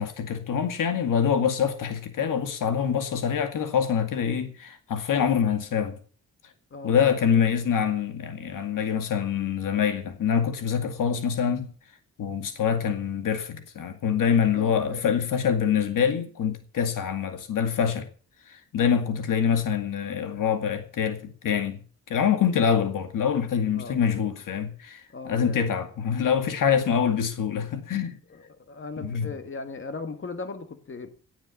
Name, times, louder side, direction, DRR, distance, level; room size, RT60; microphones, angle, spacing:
voice 1, 0.0-6.0 6.8-11.7 12.2-18.1 18.5-21.8 22.1-28.2 29.0-29.3, left 7 dB, 85° left, 2.2 m, -25 dB
voice 2, 6.7-7.5 14.5-15.0 18.8-19.1 23.7-24.0 25.1-25.7 28.3-31.1, left 4 dB, 40° left, 1.6 m, -38 dB
17.0 x 7.5 x 7.2 m
cardioid pair, 105°, 31 cm